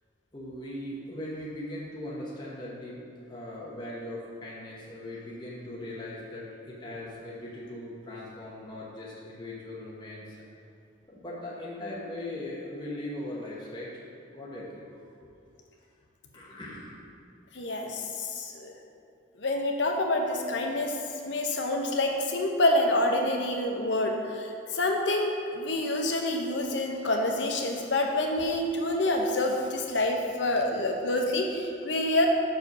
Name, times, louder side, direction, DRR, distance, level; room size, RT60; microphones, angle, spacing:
voice 1, 0.3-3.0 3.3-10.2 11.1-13.9 14.3-14.9 15.2-15.3 16.3-17.0, left 1 dB, 25° left, -6 dB, 1.0 m, -39 dB
voice 2, 17.5-18.7 19.4-32.3, left 1 dB, 80° left, 2 dB, 0.9 m, -27 dB
6.5 x 4.9 x 5.3 m, 2.5 s
head